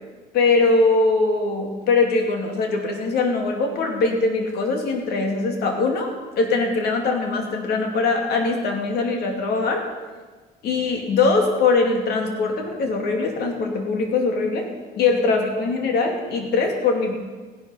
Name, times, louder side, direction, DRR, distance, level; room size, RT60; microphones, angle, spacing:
voice 1, 0.3-9.9 10.6-14.7 15.0-17.2, left 3 dB, 70° left, 3 dB, 2.5 m, -21 dB
16.0 x 10.5 x 5.7 m, 1.4 s
cardioid pair, 110°, 17 cm